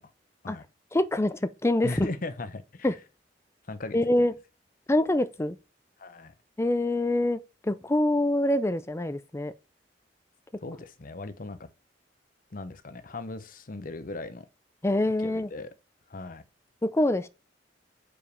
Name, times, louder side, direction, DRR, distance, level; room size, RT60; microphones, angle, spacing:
voice 1, 0.9-2.1 2.8-2.9 3.9-4.3 4.9-5.6 6.6-9.5 14.8-15.5 16.8-17.3, left 1 dB, 15° left, 0.5 m, -25 dB
voice 2, 1.8-2.9 3.7-4.0 6.0-6.3 10.6-11.7 12.5-14.5 15.2-15.7 16.1-16.4, left 2 dB, 50° left, 0.8 m, -38 dB
5.0 x 4.9 x 5.1 m
head